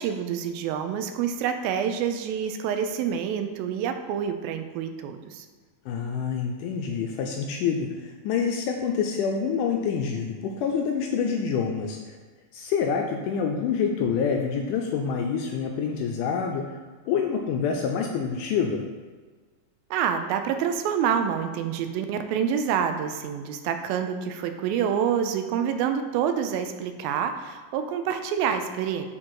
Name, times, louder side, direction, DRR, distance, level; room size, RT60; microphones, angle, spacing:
voice 1, 0.0-5.5 19.9-29.1, right 8 dB, 90° right, 7 dB, 2.4 m, -27 dB
voice 2, 5.9-12.2 12.5-16.8 17.1-18.9, left 6 dB, 85° left, 2 dB, 1.9 m, -27 dB
8.6 x 3.7 x 4.7 m, 1.4 s
omnidirectional pair, 4.1 m